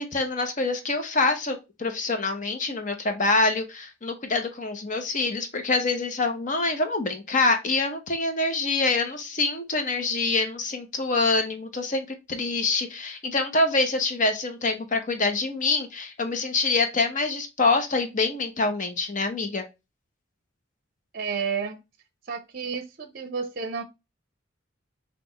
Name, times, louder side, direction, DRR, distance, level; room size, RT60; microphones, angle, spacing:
voice 1, 0.0-19.6, left 3 dB, 40° left, 0.9 m, -25 dB
voice 2, 21.1-21.8 22.2-23.8, right 6 dB, 50° right, 0.6 m, -31 dB
5.9 x 2.4 x 2.9 m
head